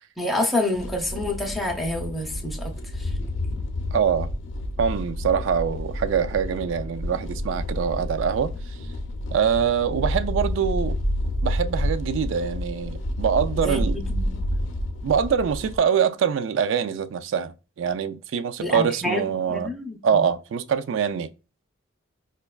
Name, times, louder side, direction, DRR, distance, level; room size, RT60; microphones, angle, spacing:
voice 1, 0.2-3.2 13.6-14.4 18.6-20.3, left 1 dB, ahead, 0.5 m, -28 dB
sound 1, 0.7-15.8, left 1 dB, 70° left, 0.5 m, -29 dB
voice 2, 3.9-4.3 4.8-8.5 9.3-11.0 11.4-14.0 15.0-19.7 20.0-21.3, right 7 dB, 65° right, 0.3 m, -24 dB
5.1 x 2.2 x 2.3 m
head